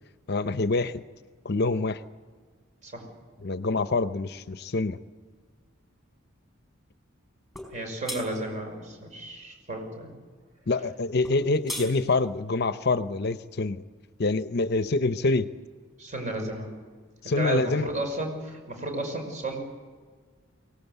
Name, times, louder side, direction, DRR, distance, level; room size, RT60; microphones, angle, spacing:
voice 1, 0.3-1.0 1.4-2.0 3.4-5.0 10.7-13.8 14.2-15.5 17.2-17.9, left 3 dB, 55° left, 12 dB, 0.7 m, -26 dB
sound 1, 7.6-7.7 8.1-8.2 11.2-11.9, equal, ahead, 5.0 m, -35 dB
voice 2, 7.7-10.1 16.0-16.7 17.2-19.6, right 2 dB, 35° right, 3 dB, 5.7 m, -33 dB
23.5 x 18.0 x 8.1 m, 1.5 s
head